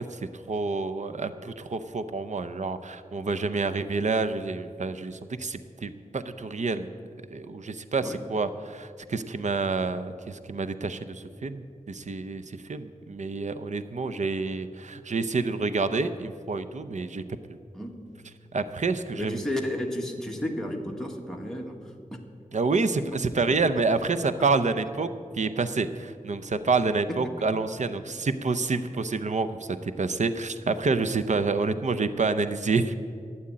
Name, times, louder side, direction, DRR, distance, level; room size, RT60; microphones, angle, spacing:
voice 1, 0.0-6.9 7.3-17.2 18.5-19.4 22.5-33.0, right 4 dB, 60° right, 11 dB, 0.7 m, -28 dB
voice 2, 17.7-18.1 19.1-21.9 27.2-27.3, left 1 dB, 5° left, 0 dB, 1.6 m, -33 dB
12.5 x 8.7 x 8.7 m, 2.3 s
wide cardioid pair, 60°, 14 cm